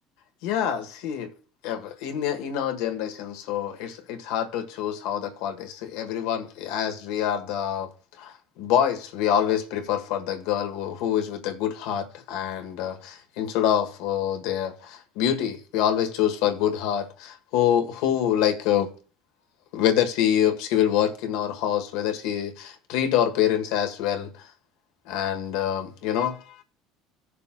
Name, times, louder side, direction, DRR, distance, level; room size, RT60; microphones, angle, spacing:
voice 1, 0.4-1.3 1.6-7.9 8.2-18.9 19.7-24.3 25.1-26.4, left 10 dB, 80° left, 1.5 m, -26 dB
17.5 x 6.7 x 2.4 m
cardioid pair, 170°, 0 cm